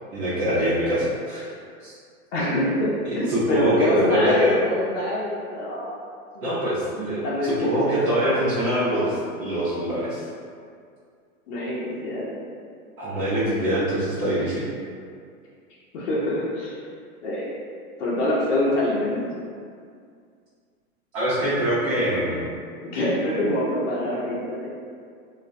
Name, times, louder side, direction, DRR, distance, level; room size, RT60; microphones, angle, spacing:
voice 1, 0.1-1.4 1.8-1.9 3.0-4.6 6.4-10.3 13.0-14.6 21.1-22.4, equal, 65° right, -12 dB, 0.9 m, -24 dB
voice 2, 2.3-5.9 6.3-6.5 7.2-8.2 11.5-12.3 15.9-16.7 17.2-17.5 18.0-19.4 22.9-24.7, left 1 dB, 55° left, -7 dB, 0.6 m, -25 dB
2.4 x 2.1 x 2.5 m, 2.2 s
hypercardioid pair, 155°, 45 cm